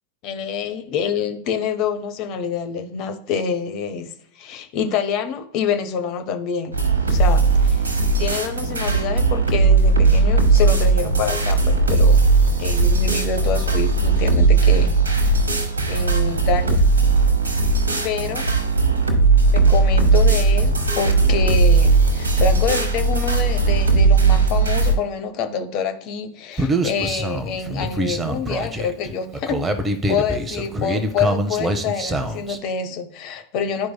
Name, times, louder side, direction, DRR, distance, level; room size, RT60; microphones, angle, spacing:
voice 1, 0.2-7.9 8.2-12.2 12.6-15.0 15.9-16.9 18.0-18.4 19.5-29.6 30.1-33.9, left 6 dB, 40° left, 8 dB, 0.8 m, -26 dB
sound 1, 6.7-24.9, right 3 dB, 75° right, 1.0 m, -17 dB
Human voice, 26.6-32.6, right 1 dB, 15° right, 0.7 m, -24 dB
10.5 x 4.6 x 2.2 m, 0.62 s
figure-of-eight pair, 90°, 0 cm